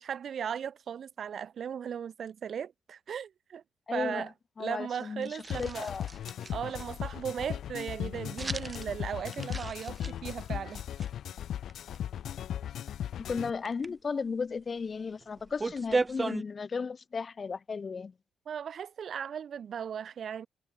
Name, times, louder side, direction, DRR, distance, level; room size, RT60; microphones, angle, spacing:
voice 1, 0.0-3.6 3.9-4.3 4.6-5.9 6.5-10.8 18.5-20.5, right 8 dB, 55° right, 4.9 m, -37 dB
voice 2, 3.9-4.3 4.6-6.1 13.2-18.1, left 5 dB, 35° left, 3.0 m, -35 dB
sound 1, 5.2-6.9 8.4-8.9 9.2-11.1 11.7-12.0 13.5-13.9 14.8-14.9 15.1-16.4, right 3 dB, 25° right, 2.1 m, -35 dB
sound 2, 5.5-13.5, left 10 dB, 70° left, 3.4 m, -37 dB
cardioid pair, 90°, 0 cm